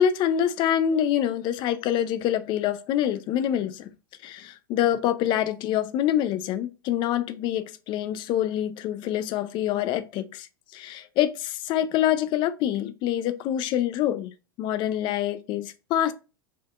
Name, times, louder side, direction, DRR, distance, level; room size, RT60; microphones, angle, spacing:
voice 1, 0.0-3.9 4.2-10.5 10.7-14.3 14.6-16.1, left 10 dB, 40° left, 0.4 m, -26 dB
3.6 x 2.6 x 2.3 m
figure-of-eight pair, 90°, 12 cm